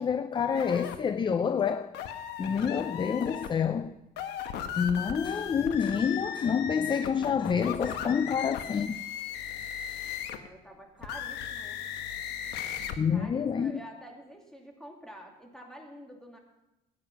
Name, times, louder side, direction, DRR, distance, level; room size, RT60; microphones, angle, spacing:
voice 1, 0.0-1.9 2.4-4.0 4.8-9.0 9.6-9.7 13.0-13.8, left 7 dB, 30° left, 0.5 m, -28 dB
sound 1, 0.5-1.0 1.9-3.5 4.1-10.5 11.0-13.0, left 9 dB, 85° left, 1.1 m, -37 dB
voice 2, 10.3-11.8 13.1-16.4, equal, 5° left, 2.9 m, -48 dB
15.5 x 9.6 x 5.7 m
cardioid pair, 110°, 17 cm